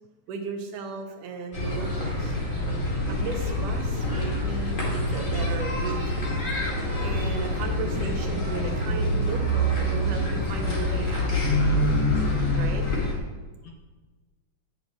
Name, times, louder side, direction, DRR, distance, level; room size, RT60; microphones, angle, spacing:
voice 1, 0.3-2.4 3.1-6.0 7.0-11.3 12.6-12.8, right 4 dB, 80° right, 5 dB, 2.6 m, -35 dB
sound 1, 1.5-13.1, equal, 20° left, 2.0 m, -26 dB
voice 2, 11.4-12.7 13.6-13.7, left 4 dB, 70° left, 1 dB, 1.6 m, -27 dB
10.5 x 10.0 x 3.3 m, 1.3 s
omnidirectional pair, 3.6 m